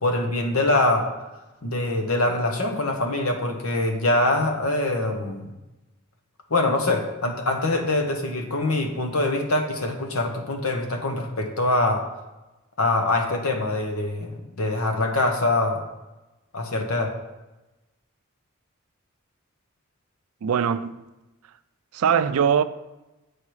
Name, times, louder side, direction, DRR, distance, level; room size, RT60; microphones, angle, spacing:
voice 1, 0.0-1.1 1.6-5.5 6.5-12.0 12.8-15.8 16.5-17.1, left 2 dB, 90° left, 1.2 m, -24 dB
voice 2, 20.4-21.0 21.9-22.6, right 7 dB, 90° right, 0.4 m, -21 dB
8.4 x 4.7 x 4.8 m
head